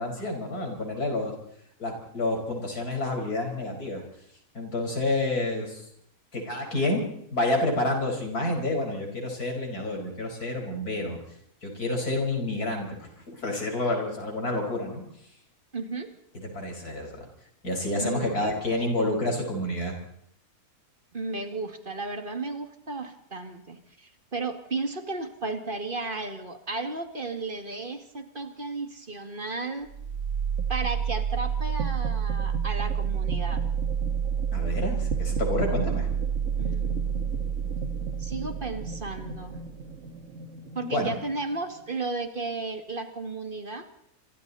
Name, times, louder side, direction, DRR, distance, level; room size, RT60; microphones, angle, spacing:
voice 1, 0.0-1.3 1.8-4.0 4.5-5.9 6.3-11.2 11.6-15.0 16.4-17.3 17.6-19.9 34.5-36.1 40.8-41.2, left 2 dB, 90° left, 2 dB, 5.5 m, -29 dB
voice 2, 15.7-16.1 18.0-19.1 21.1-29.9 30.7-33.6 36.6-37.5 38.2-39.6 40.7-43.9, right 3 dB, 35° right, 6 dB, 2.4 m, -34 dB
sound 1, 29.9-41.8, right 7 dB, 55° right, 1.7 m, -29 dB
27.0 x 23.0 x 4.2 m, 0.74 s
omnidirectional pair, 1.6 m